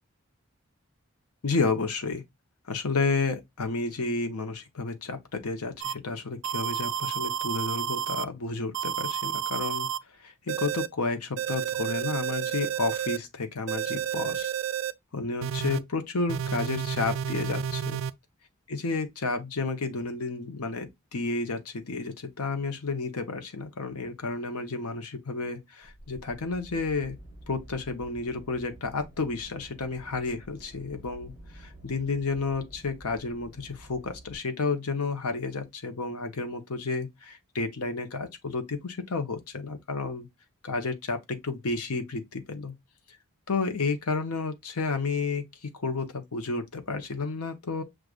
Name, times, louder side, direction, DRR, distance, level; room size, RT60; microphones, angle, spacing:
voice 1, 1.4-2.2 2.7-9.9 10.2-14.5 15.1-18.0 18.7-27.2 27.5-40.3 40.6-42.7 43.5-47.8, left 3 dB, 85° left, 0.9 m, -31 dB
sound 1, 5.8-5.9 6.4-8.2 8.7-10.0 10.5-10.9 11.4-13.2 13.7-14.9 15.4-15.8 16.3-18.1, right 9 dB, 60° right, 0.3 m, -31 dB
sound 2, 25.8-34.4, right 1 dB, 45° left, 3.2 m, -49 dB
6.4 x 2.4 x 2.3 m
head